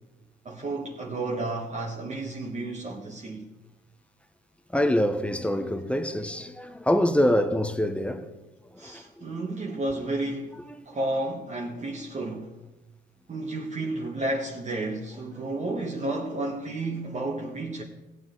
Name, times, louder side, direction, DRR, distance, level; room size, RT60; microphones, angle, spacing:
voice 1, 0.4-3.5 8.8-10.5 10.8-12.5 13.3-17.8, right 2 dB, 35° right, 1.5 m, -32 dB
voice 2, 4.7-8.3 8.8-9.0 10.7-10.9, left 1 dB, 5° left, 0.9 m, -25 dB
15.5 x 9.3 x 3.9 m
cardioid pair, 90°, 20 cm